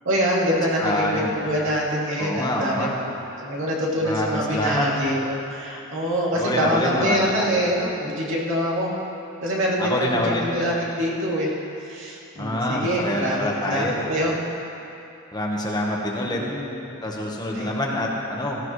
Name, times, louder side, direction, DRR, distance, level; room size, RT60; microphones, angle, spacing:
voice 1, 0.0-2.9 3.4-8.9 9.4-11.5 11.8-14.4 16.2-16.9 17.5-17.7, equal, 65° right, -5 dB, 2.8 m, -25 dB
voice 2, 0.8-1.3 2.2-2.9 4.0-4.9 6.3-7.4 9.8-10.5 12.4-14.0 15.3-16.4 17.0-18.6, left 1 dB, 20° left, -2 dB, 1.3 m, -26 dB
17.0 x 15.5 x 3.2 m, 2.8 s
head